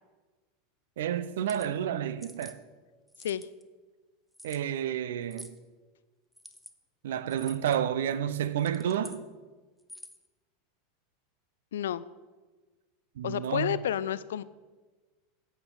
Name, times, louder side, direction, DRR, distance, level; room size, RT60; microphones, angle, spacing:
voice 1, 1.0-2.6 4.4-5.5 7.0-9.2 13.2-13.8, right 10 dB, 70° right, 0.5 m, -30 dB
sound 1, 1.3-1.7 2.2-2.6 3.1-3.6 4.3-4.6 5.3-5.6 6.3-6.7 7.3-7.8 8.5-9.2 9.8-10.3, equal, ahead, 0.7 m, -48 dB
voice 2, 11.7-12.0 13.2-14.4, left 10 dB, 70° left, 0.3 m, -30 dB
8.9 x 8.2 x 3.9 m
hypercardioid pair, 85°, 0 cm